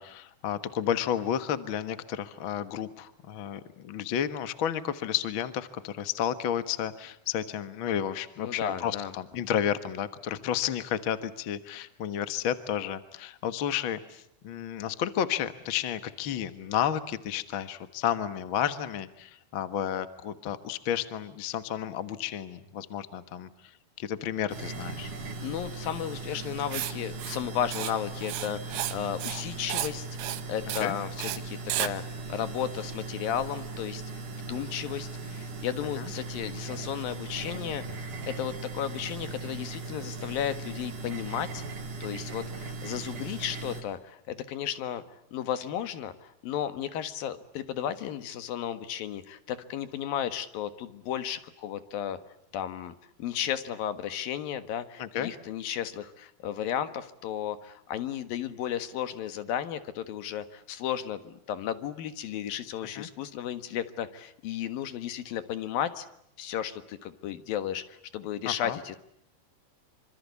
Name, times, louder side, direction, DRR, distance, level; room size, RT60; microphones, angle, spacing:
voice 1, 0.0-23.5 24.0-25.1 30.8-31.0 36.0-36.1 55.0-55.3 62.9-63.1 68.4-68.8, left 10 dB, 55° left, 12 dB, 1.5 m, -32 dB
voice 2, 8.4-9.1 25.4-30.1 30.5-41.6 42.0-45.0 45.3-52.2 52.5-52.9 53.2-66.1 66.4-69.0, left 10 dB, 75° left, 11 dB, 3.2 m, -34 dB
sound 1, 24.5-43.8, right 3 dB, 60° right, 4.9 m, -39 dB
Writing, 26.7-26.9 27.2-27.4 27.7-27.9 28.2-29.0 29.2-29.4 29.7-29.9 30.2-30.4 30.7-30.9 31.2-31.4 31.7-31.9, right 12 dB, 90° right, 3.2 m, -32 dB
27.0 x 26.0 x 8.4 m, 0.72 s
omnidirectional pair, 4.2 m